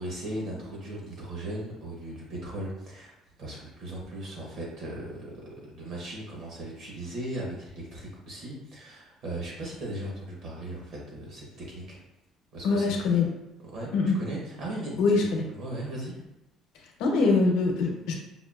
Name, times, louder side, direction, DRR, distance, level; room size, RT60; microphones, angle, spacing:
voice 1, 0.0-3.1 3.4-12.0 12.5-13.0 13.7-16.2, right 1 dB, 50° right, -3 dB, 0.9 m, -37 dB
voice 2, 12.6-13.3 13.9-14.2 15.0-15.4 17.0-18.1, left 3 dB, 85° left, 1 dB, 0.8 m, -23 dB
5.5 x 2.4 x 2.3 m, 0.93 s
cardioid pair, 170°, 0 cm